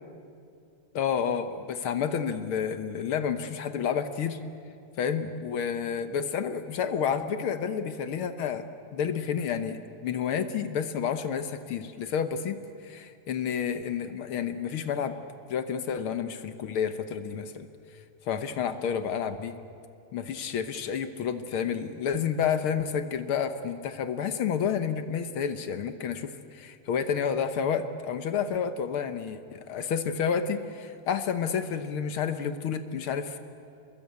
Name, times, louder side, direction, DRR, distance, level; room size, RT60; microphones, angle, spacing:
voice 1, 0.9-4.4 5.0-8.6 8.9-12.6 12.8-15.2 15.5-17.7 18.3-19.6 20.1-33.4, left 7 dB, 60° left, 10 dB, 1.5 m, -30 dB
29.0 x 21.5 x 8.2 m, 2.4 s
omnidirectional pair, 3.4 m